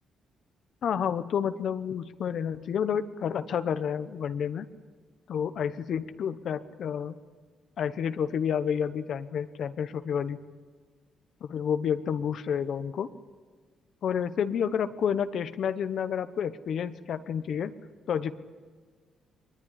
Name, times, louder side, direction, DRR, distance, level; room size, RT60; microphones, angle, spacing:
voice 1, 0.8-4.7 5.3-7.2 7.8-10.4 11.5-13.1 14.0-17.7 18.1-18.3, left 8 dB, 65° left, 11 dB, 0.9 m, -30 dB
22.0 x 20.0 x 9.9 m, 1.5 s
cardioid pair, 90°, 0 cm